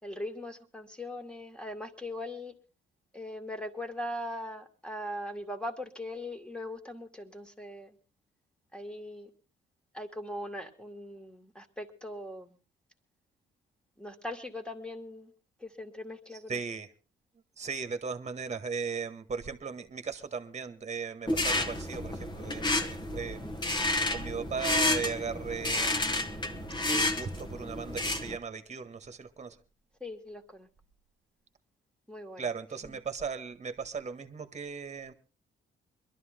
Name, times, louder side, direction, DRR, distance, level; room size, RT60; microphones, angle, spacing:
voice 1, 0.0-2.6 3.1-8.0 8.7-9.3 9.9-12.6 14.0-15.3 15.6-16.6 30.0-30.7 32.1-32.5 32.8-33.0, left 1 dB, 5° left, 2.3 m, -40 dB
voice 2, 16.5-16.9 17.6-23.5 24.1-29.5 32.4-35.1, right 5 dB, 35° right, 1.6 m, -37 dB
sound 1, 21.3-28.4, left 2 dB, 25° left, 1.6 m, -31 dB
22.0 x 12.5 x 3.8 m
cardioid pair, 90°, 20 cm